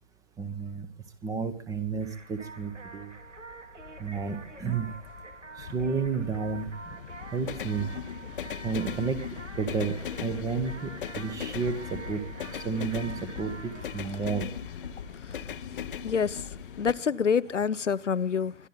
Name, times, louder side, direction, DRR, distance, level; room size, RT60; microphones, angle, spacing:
voice 1, 0.4-0.9 1.2-3.2 4.0-4.9 5.6-7.0 7.3-7.9 8.6-12.2 12.5-14.5, right 5 dB, 10° right, 1.3 m, -32 dB
sound 1, 1.7-16.9, left 8 dB, 45° left, 1.0 m, -39 dB
sound 2, 2.0-15.5, right 3 dB, 80° right, 2.4 m, -47 dB
voice 2, 16.0-16.5 16.8-18.5, left 6 dB, 80° left, 0.8 m, -27 dB
23.0 x 12.0 x 4.0 m
figure-of-eight pair, 130°, 36 cm